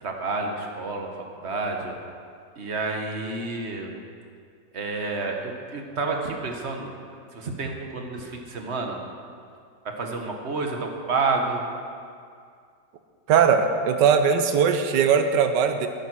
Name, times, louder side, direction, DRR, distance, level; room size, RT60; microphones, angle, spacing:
voice 1, 0.0-1.1 1.4-1.9 2.6-3.9 4.7-6.9 7.3-9.0 10.0-11.6, right 3 dB, 40° right, 2 dB, 1.4 m, -29 dB
voice 2, 13.3-15.9, right 6 dB, 70° right, 7 dB, 1.4 m, -20 dB
12.5 x 9.5 x 6.2 m, 2.2 s
omnidirectional pair, 2.0 m